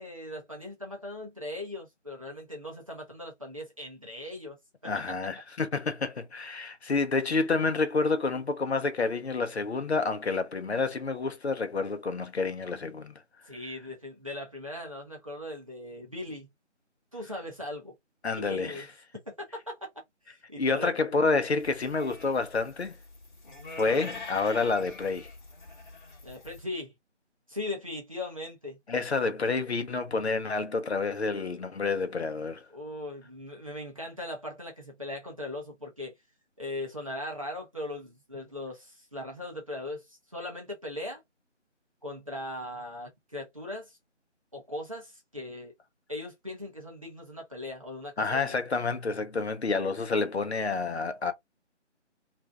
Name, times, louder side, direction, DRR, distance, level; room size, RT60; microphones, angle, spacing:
voice 1, 0.0-4.6 4.8-5.0 13.5-16.5 17.1-17.9 18.3-18.9 19.3-19.9 20.2-21.2 21.8-22.0 26.2-26.9 27.5-28.8 32.7-36.1 36.6-41.2 42.0-44.0 44.5-45.7 46.1-48.6, left 1 dB, 30° right, 0.6 m, -39 dB
voice 2, 4.8-13.1 18.2-18.9 20.6-23.0 23.7-25.3 28.9-32.6 48.2-51.3, left 4 dB, 60° left, 0.6 m, -29 dB
sound 1, 21.6-26.6, left 3 dB, 40° left, 1.1 m, -45 dB
2.5 x 2.1 x 3.3 m
figure-of-eight pair, 160°, 36 cm